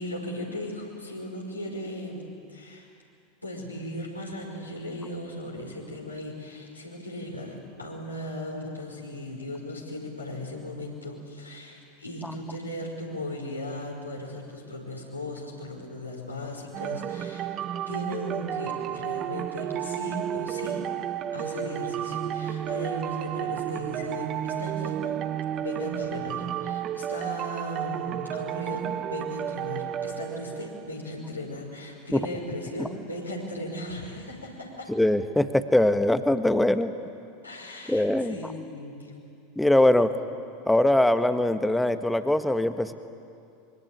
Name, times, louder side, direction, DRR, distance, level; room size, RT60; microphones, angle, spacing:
voice 1, 0.0-2.9 3.4-17.5 17.9-20.8 21.3-25.2 25.6-34.9 37.4-39.1, left 1 dB, 85° left, -2 dB, 5.6 m, -37 dB
sound 1, 16.7-31.2, right 10 dB, 35° right, 0.9 m, -32 dB
voice 2, 34.9-36.9 37.9-38.4 39.6-40.1 40.7-42.9, left 1 dB, 5° left, 10 dB, 1.4 m, -22 dB
25.5 x 24.0 x 8.8 m, 2.5 s
figure-of-eight pair, 80°, 0 cm